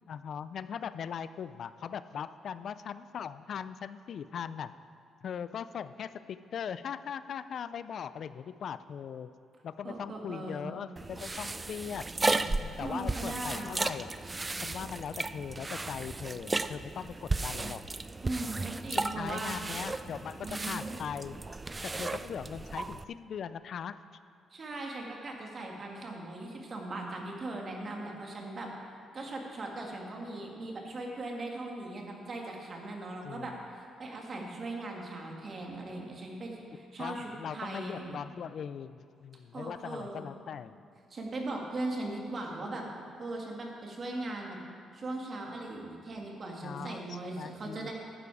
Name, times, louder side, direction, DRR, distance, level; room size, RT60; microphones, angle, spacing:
voice 1, 0.1-4.7 5.2-9.3 9.6-12.1 12.4-14.1 14.6-17.8 18.9-21.4 21.8-24.0 33.2-33.5 37.0-40.8 46.6-47.9, left 7 dB, 60° left, 14 dB, 0.3 m, -40 dB
voice 2, 9.8-10.7 12.8-13.7 18.2-19.6 20.4-21.0 24.5-28.7 29.1-38.2 39.5-40.3 41.1-42.8 43.2-44.6 44.9-47.9, right 2 dB, 40° right, 0 dB, 2.1 m, -39 dB
sound 1, 11.0-23.0, right 3 dB, 20° right, 0.4 m, -35 dB
11.5 x 10.0 x 4.8 m, 2.3 s
cardioid pair, 90°, 0 cm